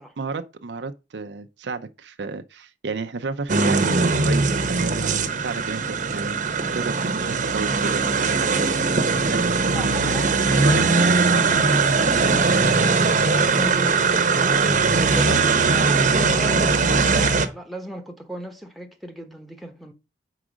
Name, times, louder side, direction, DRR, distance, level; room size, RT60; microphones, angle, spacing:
voice 1, 0.2-8.8 9.2-10.2 10.6-10.9 15.2-15.4 15.8-16.0, right 4 dB, 70° right, 0.6 m, -32 dB
sound 1, 3.5-17.5, right 4 dB, 45° right, 0.9 m, -20 dB
voice 2, 9.7-11.9 12.2-14.3 14.7-15.4 15.7-16.9 17.4-19.9, right 1 dB, ahead, 1.0 m, -36 dB
5.0 x 4.8 x 6.2 m
head